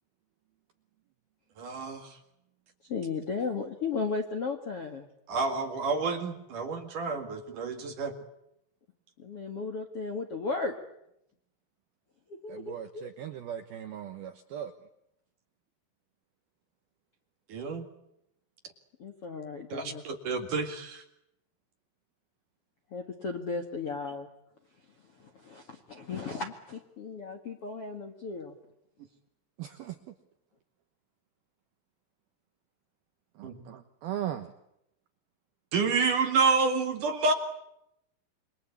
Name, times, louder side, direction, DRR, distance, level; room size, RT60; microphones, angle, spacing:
voice 1, 1.6-2.0 5.3-8.1 17.5-17.8 19.7-21.0 33.4-33.5 35.7-37.3, right 4 dB, 50° right, 6 dB, 2.8 m, -29 dB
voice 2, 2.9-5.1 9.2-10.7 12.4-13.1 19.0-20.0 22.9-24.3 25.2-28.6, left 4 dB, 55° left, 5 dB, 1.7 m, -35 dB
voice 3, 12.5-14.7 29.6-30.0 33.4-34.5, right 10 dB, 70° right, 8 dB, 2.3 m, -38 dB
28.0 x 24.5 x 8.5 m, 0.80 s
omnidirectional pair, 5.8 m